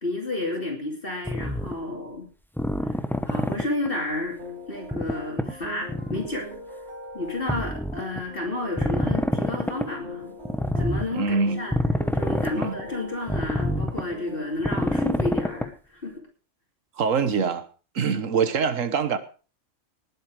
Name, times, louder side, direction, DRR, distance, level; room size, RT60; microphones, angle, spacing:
voice 1, 0.0-2.3 2.9-3.0 3.2-4.4 4.7-6.5 7.1-10.4 10.7-11.8 12.1-16.2, left 2 dB, 45° left, 2.8 m, -31 dB
sound 1, 1.3-1.7 2.6-3.9 4.9-5.5 5.9-6.3 7.5-8.2 8.8-9.9 10.4-11.0 11.7-12.8 13.3-14.1 14.6-15.7, left 1 dB, ahead, 0.7 m, -26 dB
sound 2, 4.4-15.7, left 1 dB, 65° right, 5.6 m, -41 dB
voice 2, 11.1-11.6 12.5-12.8 17.0-17.6 17.9-19.2, right 5 dB, 90° right, 1.5 m, -24 dB
19.5 x 7.8 x 4.9 m
omnidirectional pair, 1.3 m